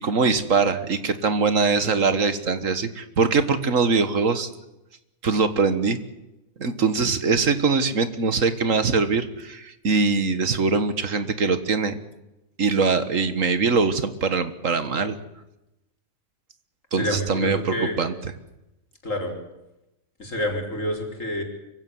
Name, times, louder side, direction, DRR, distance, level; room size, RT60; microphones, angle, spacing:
voice 1, 0.0-4.5 5.2-6.0 6.6-12.0 12.6-15.2 16.9-18.1, right 4 dB, 70° right, 12 dB, 1.9 m, -22 dB
voice 2, 16.9-18.0 19.0-19.3 20.2-21.4, equal, 65° left, 3 dB, 4.7 m, -28 dB
25.0 x 15.5 x 9.5 m, 0.94 s
omnidirectional pair, 1.4 m